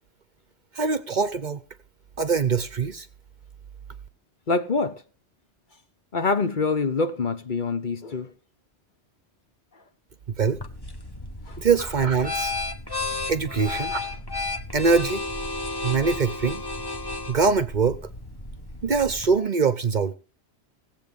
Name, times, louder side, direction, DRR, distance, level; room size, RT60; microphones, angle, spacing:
voice 1, 0.7-1.6 2.2-3.1 10.4-10.6 11.6-12.5 13.3-14.1 14.7-15.2 15.8-16.6 17.3-18.0 18.8-20.1, right 5 dB, 45° right, 0.9 m, -23 dB
voice 2, 4.5-5.0 6.1-8.3 11.5-11.6, left 4 dB, 45° left, 1.1 m, -25 dB
sound 1, 10.5-19.4, left 2 dB, 20° left, 1.1 m, -33 dB
17.5 x 7.6 x 5.3 m
omnidirectional pair, 1.2 m